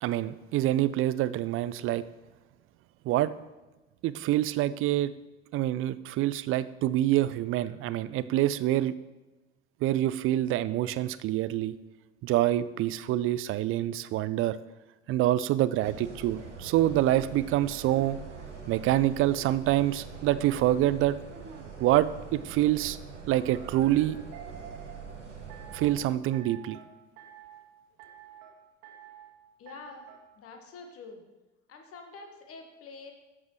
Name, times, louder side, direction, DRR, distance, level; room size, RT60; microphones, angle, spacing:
voice 1, 0.0-2.0 3.1-3.3 4.0-5.1 5.5-8.9 9.8-11.8 12.2-14.6 15.1-18.2 18.7-21.2 21.8-23.0 23.3-24.2 25.7-26.8, right 14 dB, 40° right, 16 dB, 0.4 m, -26 dB
sound 1, 15.7-18.6 19.2-22.1 23.4-25.0 25.5-26.0 26.3-26.9 27.2-27.6 28.0-28.5 28.8-29.3 29.7-30.2, right 7 dB, 55° right, 1.7 m, -50 dB
sound 2, 15.8-26.0, right 5 dB, 90° right, 0.9 m, -44 dB
voice 2, 29.6-30.1 30.3-31.2 31.7-33.1, left 4 dB, 40° left, 4 dB, 1.5 m, -46 dB
11.0 x 7.4 x 3.1 m, 1.1 s
figure-of-eight pair, 60°, 35 cm